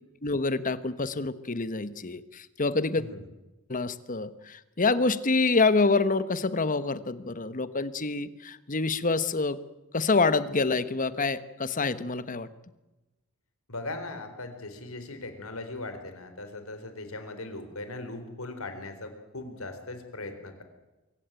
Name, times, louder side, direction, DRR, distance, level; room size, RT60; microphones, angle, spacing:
voice 1, 0.2-3.0 3.7-9.6 9.9-12.5, left 3 dB, 40° left, 15 dB, 1.2 m, -27 dB
voice 2, 3.0-3.3 13.7-20.6, left 2 dB, 75° left, 8 dB, 4.0 m, -39 dB
24.5 x 15.5 x 9.1 m, 1.0 s
head